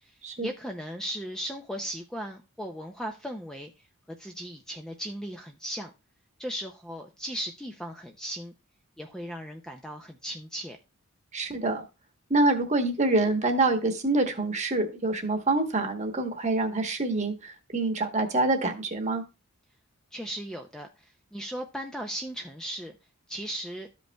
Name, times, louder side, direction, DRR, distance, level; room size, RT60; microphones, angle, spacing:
voice 1, 0.4-3.7 4.2-5.9 6.4-8.5 9.0-10.8 20.1-20.9 21.3-22.9 23.3-23.9, equal, 5° left, 0.4 m, -37 dB
voice 2, 11.3-11.8 12.3-19.2, right 2 dB, 30° right, 1.0 m, -26 dB
13.0 x 5.2 x 2.2 m
head